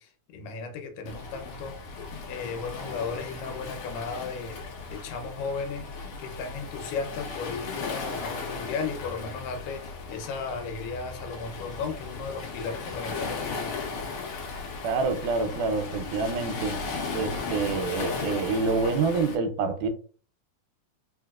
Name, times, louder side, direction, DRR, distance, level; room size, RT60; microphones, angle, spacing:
voice 1, 0.0-1.8 2.3-5.9 6.2-14.1, left 4 dB, 90° left, 2.3 m, -35 dB
Waves surf, 1.0-19.4, left 4 dB, 65° left, 1.6 m, -36 dB
voice 2, 14.8-16.8 17.1-19.9, right 4 dB, 85° right, 2.1 m, -27 dB
4.8 x 2.8 x 2.3 m
omnidirectional pair, 3.6 m